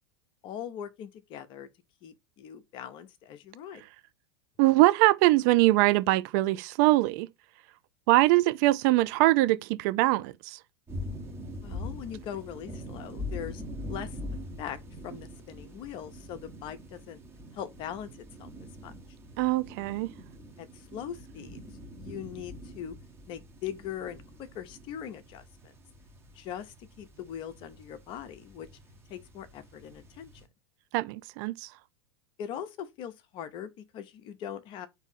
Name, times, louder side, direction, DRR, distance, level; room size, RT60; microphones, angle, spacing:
voice 1, 0.4-1.7 2.0-3.8 11.6-13.6 13.9-14.2 14.6-14.8 15.0-17.2 17.5-18.1 18.4-18.5 18.8-18.9 20.6-21.6 22.0-23.0 23.3-25.7 26.3-28.7 29.1-30.3 32.4-34.9, left 9 dB, 35° left, 0.6 m, -41 dB
voice 2, 4.6-7.3 8.1-10.6 19.4-20.1 30.9-31.7, right 18 dB, 45° right, 0.4 m, -23 dB
sound 1, 10.9-30.5, left 1 dB, 15° right, 1.0 m, -43 dB
3.4 x 2.7 x 4.0 m
figure-of-eight pair, 85°, 14 cm